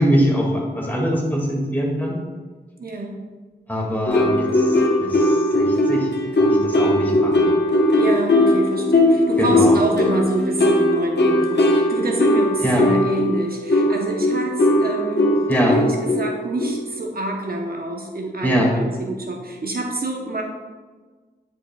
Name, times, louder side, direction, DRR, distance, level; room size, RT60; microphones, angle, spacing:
voice 1, 0.0-2.2 3.7-7.5 9.4-9.8 12.6-12.9 15.5-15.8 18.4-18.8, equal, 10° left, -2 dB, 2.1 m, -22 dB
voice 2, 2.8-3.2 8.0-15.3 15.7-20.4, right 2 dB, 60° right, 1 dB, 0.9 m, -27 dB
sound 1, 4.1-17.0, left 1 dB, 75° left, 1.0 m, -19 dB
10.0 x 4.9 x 2.3 m, 1.4 s
wide cardioid pair, 55°, 18 cm